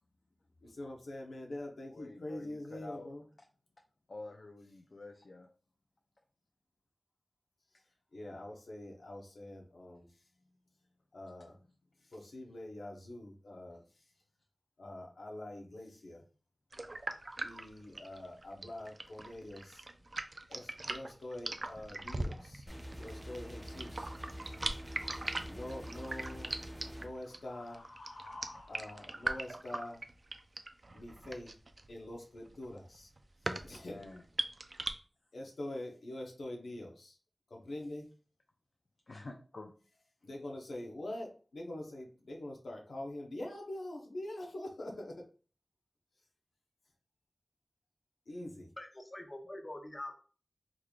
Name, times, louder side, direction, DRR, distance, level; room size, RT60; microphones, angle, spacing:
voice 1, 0.6-3.2 7.7-10.3 11.1-11.7 12.0-14.1 14.8-16.2 17.4-19.8 20.5-22.7 22.9-24.1 25.5-30.0 30.9-31.6 31.9-33.1 33.4-34.0 35.3-37.2 37.5-38.1 40.2-45.3 48.3-48.7, left 1 dB, 85° left, 0 dB, 0.8 m, -45 dB
voice 2, 1.9-3.1 4.1-5.5 33.8-34.2 39.1-39.7, left 2 dB, 65° left, 2 dB, 0.5 m, -48 dB
sound 1, 16.7-34.9, right 2 dB, 55° right, 0.4 m, -41 dB
sound 2, 22.7-27.1, equal, ahead, 0.8 m, -46 dB
voice 3, 48.8-50.1, left 1 dB, 35° left, 3 dB, 0.8 m, -44 dB
3.7 x 3.1 x 2.3 m, 0.39 s
cardioid pair, 40°, 0 cm